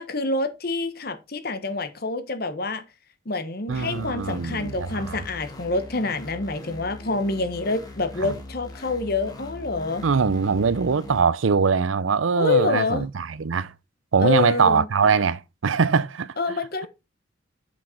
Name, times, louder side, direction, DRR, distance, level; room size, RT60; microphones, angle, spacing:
voice 1, 0.0-2.8 3.2-10.0 12.4-13.1 14.2-14.9 16.4-16.9, left 3 dB, 50° left, 1.3 m, -27 dB
sound 1, 3.7-11.2, left 2 dB, 20° left, 1.6 m, -40 dB
voice 2, 3.7-5.2 8.2-8.3 10.0-13.7 14.1-16.3, right 5 dB, 85° right, 0.6 m, -22 dB
7.4 x 6.3 x 4.4 m
head